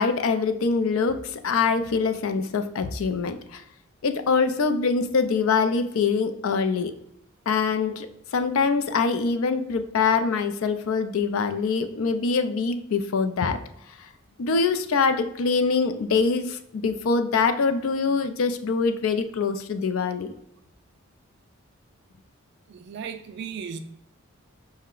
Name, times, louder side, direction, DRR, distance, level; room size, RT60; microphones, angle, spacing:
voice 1, 0.0-3.6 4.0-6.9 7.5-8.1 8.3-13.6 14.4-20.3, left 5 dB, 70° left, 0.4 m, -24 dB
voice 2, 22.7-23.8, right 7 dB, 50° right, 0.3 m, -36 dB
5.6 x 2.1 x 3.7 m
head